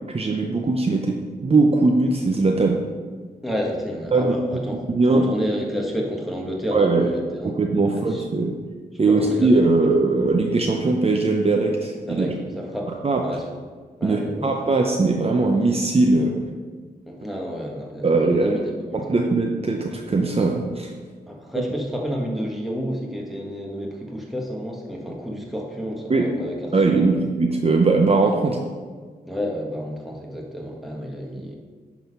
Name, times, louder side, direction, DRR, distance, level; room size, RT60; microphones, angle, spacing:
voice 1, 0.1-2.8 4.1-5.3 6.7-7.1 7.4-8.5 9.0-12.3 13.0-13.2 14.0-16.4 18.0-18.6 18.9-20.9 26.1-26.4 26.7-28.6, right 3 dB, 35° right, 1 dB, 0.7 m, -20 dB
voice 2, 3.4-4.7 5.1-7.6 7.9-8.3 9.1-9.6 12.1-12.3 12.7-12.9 13.2-13.4 14.0-14.5 17.1-19.0 21.3-26.6 26.9-27.2 29.2-31.5, equal, ahead, -1 dB, 1.6 m, -30 dB
10.5 x 4.0 x 5.4 m, 1.5 s
cardioid pair, 80°, 17 cm